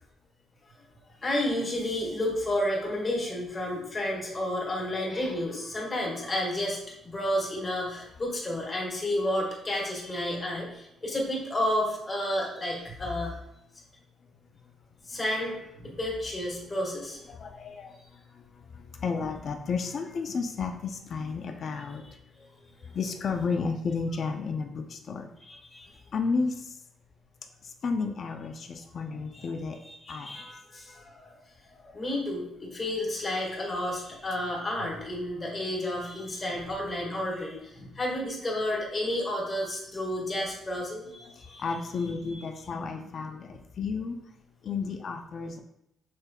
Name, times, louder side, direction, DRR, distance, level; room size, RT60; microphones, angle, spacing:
voice 1, 1.2-13.3 15.1-17.2 25.4-25.9 29.3-29.5 29.9-31.4 31.8-41.6 42.0-42.4 42.7-43.1, left 1 dB, 25° left, -3 dB, 1.7 m, -31 dB
voice 2, 17.3-22.0 22.8-25.3 26.1-26.8 27.6-29.8 30.1-30.4 41.2-44.2 44.6-45.6, left 4 dB, 50° left, 5 dB, 0.4 m, -32 dB
6.3 x 3.3 x 2.2 m, 0.80 s
cardioid pair, 90°, 0 cm